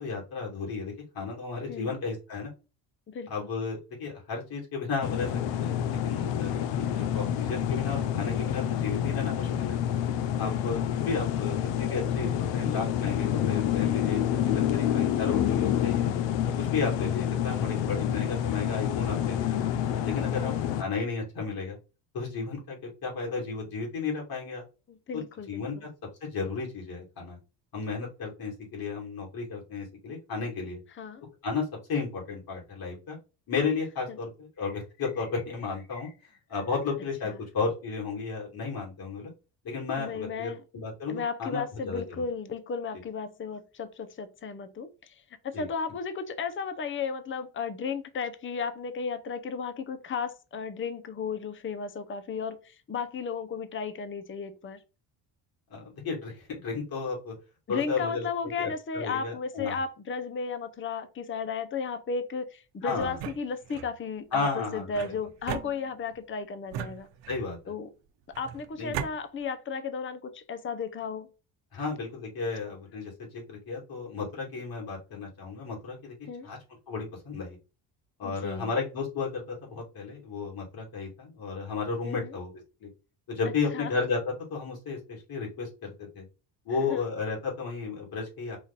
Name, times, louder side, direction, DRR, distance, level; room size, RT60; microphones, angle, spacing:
voice 1, 0.0-2.5 3.3-5.3 5.5-9.8 10.4-16.1 16.6-19.6 20.0-20.5 20.8-21.8 22.1-24.6 25.1-25.9 26.2-27.4 27.7-30.8 31.4-33.2 33.5-39.3 39.6-42.2 45.5-45.7 55.7-57.3 57.7-58.3 58.6-59.8 62.8-63.2 64.3-65.0 67.3-67.6 68.8-69.0 71.7-76.1 76.4-76.6 76.9-77.6 78.2-82.5 82.8-82.9 83.3-86.2 86.6-88.6, left 4 dB, 55° left, 2.8 m, -33 dB
voice 2, 3.1-3.5 6.5-6.6 10.4-10.6 16.4-16.8 20.4-20.6 24.9-25.8 31.0-31.2 37.2-37.3 40.0-40.6 41.1-54.8 57.7-67.1 67.7-67.9 68.4-71.3 76.3-76.5 78.2-78.7 82.0-82.3 83.7-83.9 86.9-87.0, left 5 dB, 25° left, 0.7 m, -34 dB
sound 1, 5.0-20.8, left 10 dB, 80° left, 0.7 m, -28 dB
sound 2, 63.0-63.9 64.9-66.2 66.7-67.6 68.3-69.1, right 9 dB, 75° right, 0.8 m, -38 dB
5.0 x 2.5 x 4.1 m
cardioid pair, 90°, 44 cm